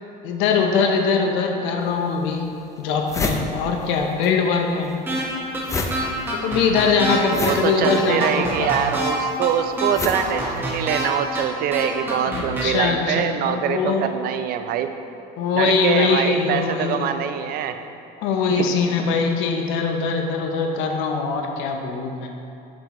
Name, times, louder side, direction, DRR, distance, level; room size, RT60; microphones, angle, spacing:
voice 1, 0.2-2.4 2.8-4.9 6.3-8.7 12.2-14.1 15.4-17.1 18.2-22.3, left 5 dB, 85° left, 3 dB, 0.7 m, -22 dB
sound 1, 1.8-1.9 2.5-2.6 2.8-4.3 4.6-11.1, left 3 dB, 15° left, 0.4 m, -30 dB
sound 2, 5.1-5.2 5.5-5.6 5.9-7.2 7.5-7.6 7.8-9.1 9.4-9.5 9.8-11.0 11.3-11.4 11.7-12.6, right 1 dB, 10° right, 1.2 m, -26 dB
voice 2, 7.2-14.9 15.5-17.8 18.5-18.7, right 9 dB, 50° right, 8 dB, 0.4 m, -24 dB
7.4 x 6.1 x 3.0 m, 2.7 s
cardioid pair, 150°, 19 cm